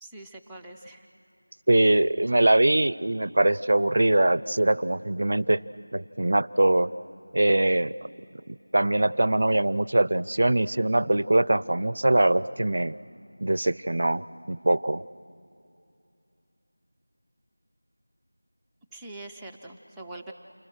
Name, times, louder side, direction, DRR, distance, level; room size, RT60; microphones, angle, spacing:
voice 1, 0.0-1.1 1.9-2.0 18.9-20.3, right 2 dB, ahead, -5 dB, 0.6 m, -43 dB
voice 2, 1.7-5.6 5.9-6.9 7.3-7.9 8.7-13.0 13.4-15.0, right 1 dB, 55° right, 19 dB, 0.5 m, -22 dB
29.5 x 25.0 x 6.4 m, 2.6 s
figure-of-eight pair, 175°, 0 cm